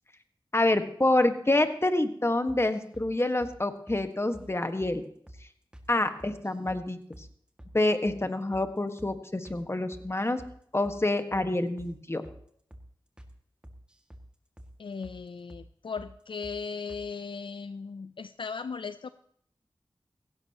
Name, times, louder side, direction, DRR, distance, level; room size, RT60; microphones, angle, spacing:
voice 1, 0.5-5.0 5.9-7.0 7.7-10.4 10.7-12.2, left 2 dB, 30° left, 8 dB, 1.6 m, -27 dB
sound 1, 2.5-3.1 3.4-3.6 3.9-4.0 4.3-4.5 4.8-5.0 5.3-5.4 5.7-5.9 6.2-6.8 7.1-7.3 7.6-7.8 8.1-8.2 8.5-8.7 9.0-9.1 9.4-9.6 9.9-10.5 10.8-11.0 11.3-11.5 11.8-11.9 12.2-12.4 12.7-12.9 13.2-13.3 13.6-14.3 14.6-14.7 15.0-15.2 15.5-15.7 16.0-16.1 16.4-16.6 16.9-17.1, equal, 10° right, 2.1 m, -48 dB
voice 2, 14.8-19.1, left 5 dB, 70° left, 12 dB, 0.5 m, -37 dB
17.0 x 16.0 x 3.0 m, 0.65 s
cardioid pair, 40°, 9 cm